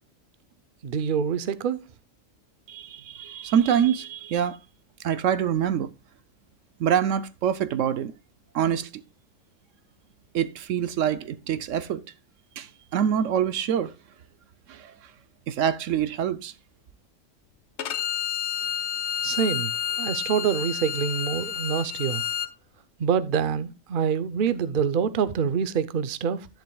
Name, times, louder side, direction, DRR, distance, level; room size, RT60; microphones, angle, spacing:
voice 1, 0.8-1.8 19.2-19.7 20.0-22.2 23.0-26.5, right 7 dB, 50° right, 0.8 m, -26 dB
voice 2, 2.7-4.6 5.0-5.9 6.8-8.1 8.5-8.9 10.3-12.0 12.6-13.9 14.7-14.9 15.5-16.5, right 9 dB, 75° right, 1.0 m, -25 dB
Bowed string instrument, 17.8-22.5, left 10 dB, 65° left, 1.0 m, -30 dB
11.0 x 10.5 x 2.3 m
omnidirectional pair, 1.4 m